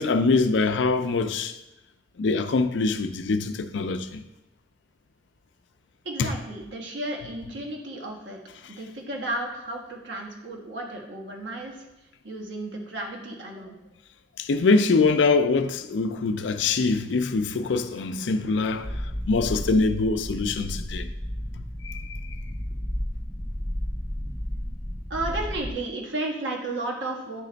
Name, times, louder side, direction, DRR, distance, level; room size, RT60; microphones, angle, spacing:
voice 1, 0.0-1.5 2.2-4.2 6.2-6.3 14.4-18.9 19.3-21.1 21.6-22.2, left 3 dB, 80° left, 0.4 m, -24 dB
voice 2, 6.0-8.4 8.7-11.8 12.2-13.7 25.1-27.4, right 2 dB, 80° right, 1.3 m, -33 dB
sound 1, 18.8-25.7, equal, 10° right, 1.2 m, -32 dB
9.7 x 3.3 x 3.9 m
head